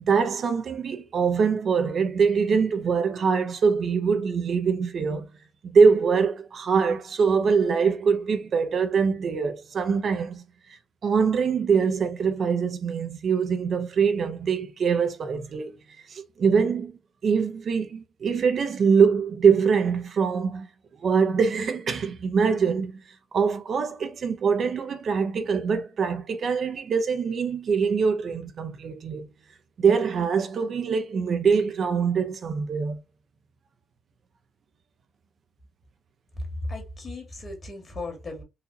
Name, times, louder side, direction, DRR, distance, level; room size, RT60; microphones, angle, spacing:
voice 1, 0.0-5.3 5.6-10.4 10.7-15.8 16.1-16.9 17.2-20.7 21.0-23.0 23.3-29.3 29.8-33.0, right 5 dB, 55° right, 0.6 m, -23 dB
voice 2, 36.4-38.4, left 2 dB, 35° left, 1.9 m, -35 dB
4.0 x 2.7 x 2.7 m
cardioid pair, 90°, 0 cm